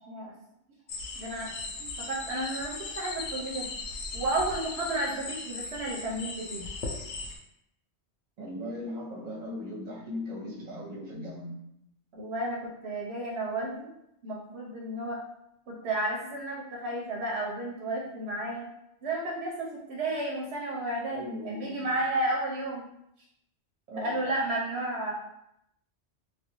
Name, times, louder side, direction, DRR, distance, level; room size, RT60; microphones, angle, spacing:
sound 1, 0.9-7.4, left 3 dB, 85° left, 0.9 m, -38 dB
voice 1, 1.1-3.7 4.1-6.7 12.1-13.9 14.2-15.2 15.7-18.7 19.0-22.8 24.0-25.1, right 1 dB, 75° right, -3 dB, 0.8 m, -32 dB
voice 2, 8.4-11.6 21.1-21.9 23.9-24.3, left 1 dB, 40° right, -5 dB, 0.8 m, -38 dB
2.4 x 2.2 x 2.9 m, 0.78 s
omnidirectional pair, 1.2 m